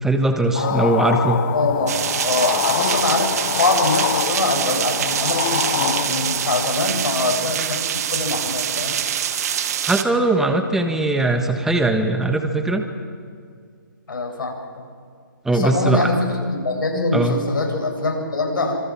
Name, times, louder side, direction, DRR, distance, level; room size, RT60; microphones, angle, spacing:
voice 1, 0.0-1.4 9.8-12.8 15.4-16.1 17.1-17.4, right 2 dB, 5° right, 5 dB, 1.5 m, -20 dB
sound 1, 0.5-6.7, left 11 dB, 35° left, 1.0 m, -26 dB
voice 2, 0.6-1.0 1.5-2.0 2.2-9.1 14.1-14.8 15.5-18.7, left 2 dB, 70° left, 2 dB, 7.2 m, -23 dB
sound 2, 1.9-10.0, right 9 dB, 45° right, 1.6 m, -25 dB
26.0 x 26.0 x 6.1 m, 2.1 s
hypercardioid pair, 145°, 11 cm